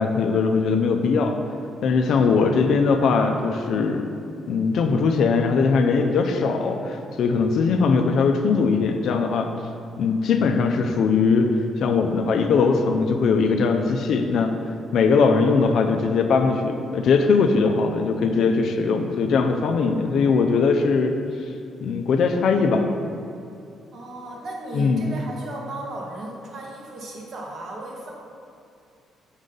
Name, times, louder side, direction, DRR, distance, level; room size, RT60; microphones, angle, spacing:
voice 1, 0.0-1.4 1.8-4.0 4.5-9.5 10.0-11.5 11.8-14.5 14.9-21.2 21.8-22.9 24.7-25.1, left 4 dB, 70° left, 5 dB, 0.5 m, -20 dB
voice 2, 2.0-2.6 23.9-28.1, right 1 dB, 60° right, -2 dB, 1.4 m, -36 dB
6.2 x 5.3 x 3.9 m, 2.5 s
cardioid pair, 90°, 0 cm